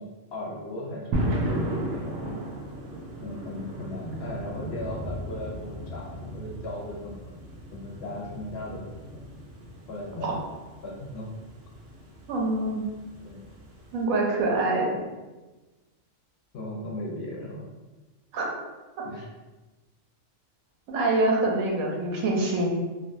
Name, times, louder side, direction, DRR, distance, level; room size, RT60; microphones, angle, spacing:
voice 1, 0.0-2.4 3.2-7.4 7.7-8.8 9.1-9.2 9.9-10.4 10.8-11.3 13.2-13.4 16.5-17.7 19.0-19.3, left 1 dB, 60° left, -2 dB, 0.7 m, -37 dB
sound 1, 1.1-14.0, right 1 dB, 70° right, 0.8 m, -35 dB
voice 2, 12.3-12.8 13.9-14.9 18.3-18.5 20.9-22.7, right 2 dB, 90° right, -1 dB, 1.1 m, -25 dB
3.4 x 2.2 x 2.6 m, 1.2 s
omnidirectional pair, 1.4 m